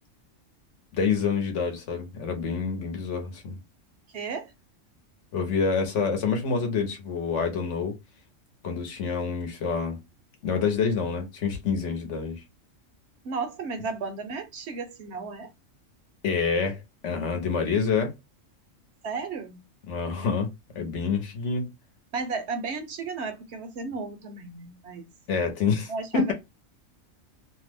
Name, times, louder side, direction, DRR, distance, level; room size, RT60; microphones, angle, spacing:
voice 1, 0.9-3.6 5.3-7.9 8.6-10.0 10.4-12.4 16.2-18.1 19.9-20.5 20.7-21.7 25.3-26.3, left 5 dB, 70° left, 1.1 m, -27 dB
voice 2, 4.1-4.5 13.2-15.5 19.0-19.6 22.1-25.1 25.9-26.3, right 4 dB, 65° right, 0.8 m, -34 dB
2.6 x 2.1 x 3.2 m
omnidirectional pair, 1.3 m